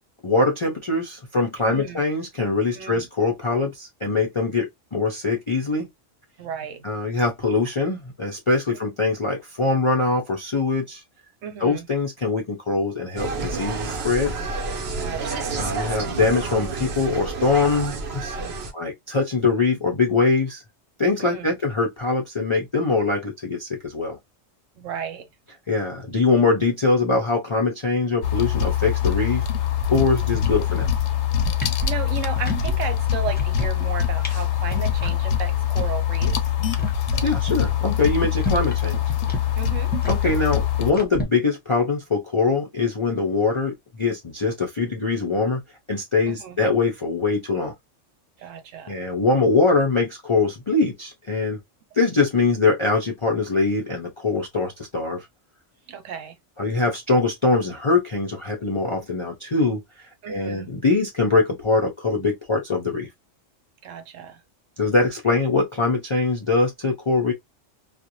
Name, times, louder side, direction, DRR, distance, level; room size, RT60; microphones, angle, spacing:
voice 1, 0.2-5.9 6.8-11.0 11.6-14.3 15.6-18.4 18.7-20.6 21.0-24.2 25.7-29.4 29.9-30.9 37.2-39.0 40.1-45.6 45.9-47.7 48.9-51.6 51.9-55.3 56.6-59.8 60.3-63.1 64.8-67.3, left 3 dB, 50° left, 0.3 m, -23 dB
voice 2, 1.6-2.0 2.7-3.1 6.4-7.1 8.7-8.8 11.4-11.9 15.0-15.6 18.3-18.6 21.2-21.6 24.8-25.3 31.6-36.4 39.6-39.9 46.3-46.6 48.4-49.0 55.9-56.4 60.2-60.7 63.8-64.4, right 8 dB, 85° right, 1.0 m, -34 dB
Insect, 13.2-18.7, right 4 dB, 60° right, 0.9 m, -29 dB
sound 1, 28.2-40.9, left 10 dB, 70° left, 0.8 m, -23 dB
sound 2, 29.9-30.1 30.3-31.1 31.4-32.8 33.1-33.9 34.2-34.4 34.7-35.2 35.5-35.6 35.8-35.9 36.2-38.8 39.1-41.3, left 1 dB, 10° left, 0.6 m, -31 dB
2.5 x 2.0 x 2.8 m
omnidirectional pair, 1.3 m